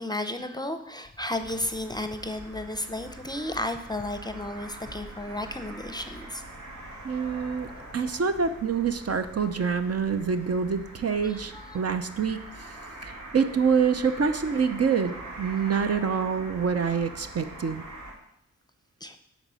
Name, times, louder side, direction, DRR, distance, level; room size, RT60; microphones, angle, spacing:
voice 1, 0.0-6.4 11.2-11.8 19.0-19.2, left 1 dB, 15° left, 8 dB, 0.6 m, -33 dB
sound 1, 1.4-18.1, right 1 dB, 80° right, 2.8 m, -43 dB
voice 2, 7.0-12.7 13.0-17.8, right 6 dB, 55° right, 9 dB, 0.7 m, -26 dB
10.5 x 4.1 x 7.5 m, 0.79 s
wide cardioid pair, 135°, 30 cm